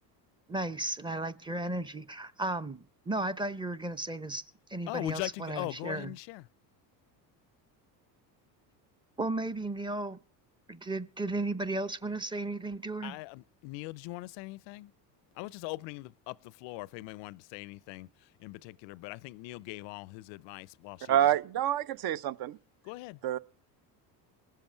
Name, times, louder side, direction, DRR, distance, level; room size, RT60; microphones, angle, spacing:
voice 1, 0.5-4.4 4.7-6.1 9.2-10.2 10.7-13.1, right 2 dB, 10° right, 0.7 m, -34 dB
voice 2, 4.9-6.4 13.0-14.9 15.4-21.3 22.8-23.2, left 20 dB, 65° left, 0.5 m, -41 dB
voice 3, 21.1-22.6 23.2-23.4, right 11 dB, 50° right, 0.7 m, -27 dB
20.0 x 7.5 x 4.4 m
hypercardioid pair, 75°, 49 cm